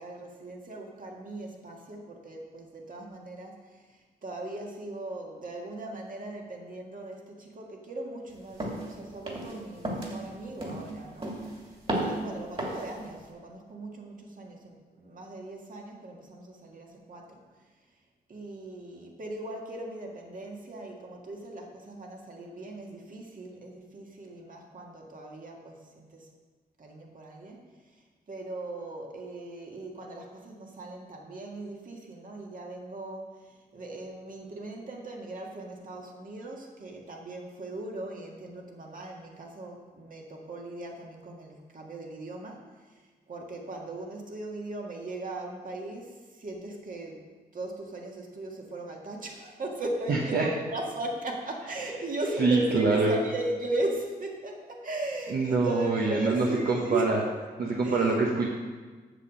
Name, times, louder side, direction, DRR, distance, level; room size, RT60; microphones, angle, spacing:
voice 1, 0.0-11.4 11.6-17.6 18.3-26.3 26.8-47.3 47.5-57.2 57.7-58.2, right 2 dB, 55° right, 0 dB, 1.9 m, -38 dB
sound 1, 8.6-8.9 9.3-9.6 9.8-10.2 10.6-10.9 11.2-11.6 11.9-12.2 12.6-12.9, right 1 dB, 35° right, 2.6 m, -32 dB
voice 2, 50.1-50.5 52.4-53.2 55.3-57.2 57.6-58.5, right 3 dB, 70° right, -2 dB, 1.2 m, -25 dB
8.1 x 7.2 x 6.5 m, 1.4 s
cardioid pair, 80°, 17 cm